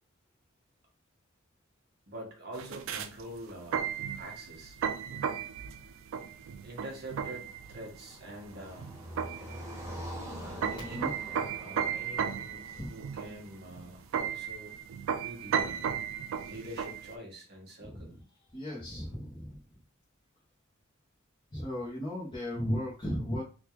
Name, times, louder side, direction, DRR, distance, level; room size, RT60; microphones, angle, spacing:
voice 1, 2.1-3.9 4.2-4.8 6.6-8.9 9.4-9.7 10.4-14.8 15.2-15.8 16.5-18.2, right 1 dB, 50° right, -1 dB, 1.2 m, -46 dB
sound 1, 2.5-17.2, right 7 dB, 65° right, 0.3 m, -35 dB
Car passing by, 7.0-14.1, equal, 15° right, 0.9 m, -45 dB
voice 2, 10.8-11.1 12.8-12.9 17.8-18.2 18.5-19.6 21.5-23.4, equal, 25° left, -6 dB, 0.9 m, -35 dB
3.6 x 2.4 x 3.0 m, 0.35 s
head